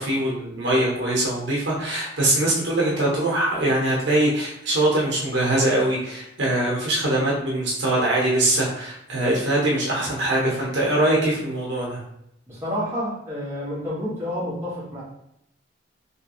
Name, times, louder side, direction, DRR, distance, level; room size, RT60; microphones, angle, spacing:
voice 1, 0.0-12.0, right 1 dB, 70° right, -4 dB, 1.1 m, -22 dB
voice 2, 12.5-15.0, equal, 15° right, -9 dB, 1.5 m, -29 dB
3.3 x 3.1 x 3.0 m, 0.77 s
head